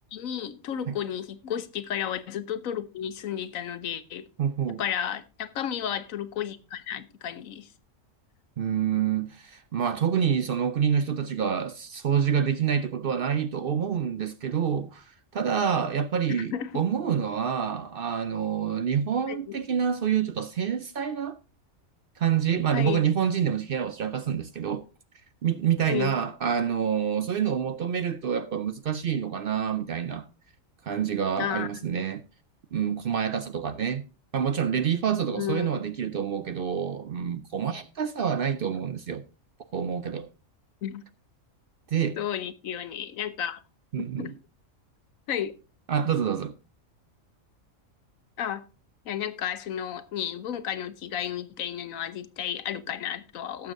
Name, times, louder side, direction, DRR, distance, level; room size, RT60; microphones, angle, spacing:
voice 1, 0.1-4.3 4.8-7.7 16.3-16.8 19.3-19.6 22.7-23.1 25.9-26.1 31.4-31.8 35.1-35.9 40.8-41.0 42.2-43.6 44.2-44.3 45.3-45.5 48.4-48.6 49.0-53.7, left 9 dB, 85° left, 1.2 m, -33 dB
voice 2, 4.4-4.8 8.6-15.0 15.3-21.4 22.2-24.8 25.4-30.3 30.9-32.2 32.7-34.1 34.3-39.2 39.7-40.3 41.9-42.2 43.9-44.3 45.9-46.5, right 8 dB, 55° right, 0.6 m, -27 dB
18.5 x 7.0 x 2.6 m
omnidirectional pair, 1.4 m